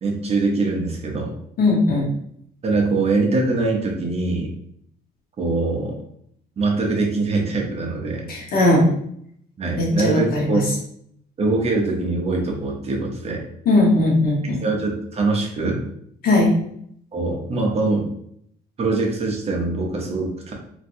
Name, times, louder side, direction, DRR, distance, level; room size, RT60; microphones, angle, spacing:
voice 1, 0.0-1.3 2.6-4.5 5.4-6.0 6.6-8.3 9.6-10.6 11.4-13.4 14.6-15.8 17.1-18.1 18.8-20.5, right 3 dB, 35° right, 0 dB, 0.8 m, -23 dB
voice 2, 1.6-2.1 8.3-8.9 9.8-10.6 13.6-14.6 16.2-16.6, left 2 dB, 60° left, -1 dB, 1.1 m, -18 dB
3.0 x 2.7 x 2.6 m, 0.68 s
cardioid pair, 110°, 17 cm